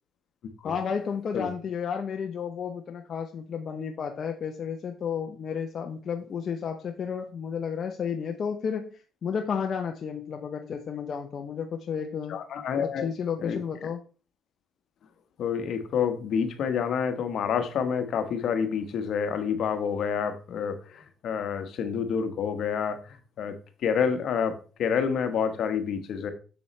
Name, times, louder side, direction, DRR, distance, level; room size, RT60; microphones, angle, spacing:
voice 1, 0.6-12.4 12.8-14.0, left 7 dB, 55° left, 4 dB, 0.7 m, -32 dB
voice 2, 12.3-13.1 13.4-13.6 15.4-23.6 23.8-26.3, left 7 dB, 70° left, 8 dB, 1.2 m, -28 dB
7.0 x 7.0 x 3.2 m, 0.36 s
cardioid pair, 90°, 0 cm